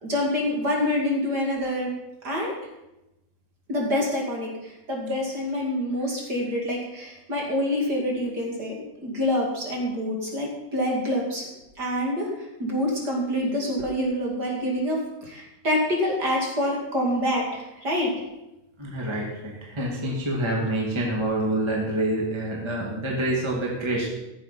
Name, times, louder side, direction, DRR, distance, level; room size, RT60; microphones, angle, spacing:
voice 1, 0.0-1.9 2.2-2.5 3.7-8.7 9.0-11.5 11.8-12.3 12.6-18.1, left 1 dB, 30° right, -2 dB, 2.7 m, -26 dB
voice 2, 18.8-24.1, right 1 dB, 10° right, -2 dB, 1.4 m, -27 dB
15.0 x 7.6 x 5.7 m, 0.93 s
omnidirectional pair, 3.8 m